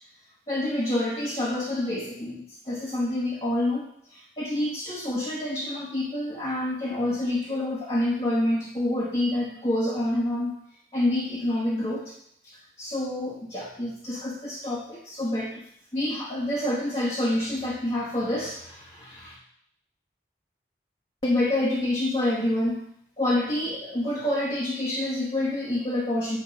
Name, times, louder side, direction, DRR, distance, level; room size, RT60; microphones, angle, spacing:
voice 1, 0.5-3.8 4.1-10.6 10.9-12.1 12.8-15.6 15.9-19.3 21.2-22.8 23.2-26.4, left 1 dB, 30° left, -5 dB, 1.0 m, -27 dB
8.9 x 4.6 x 3.8 m, 0.71 s
head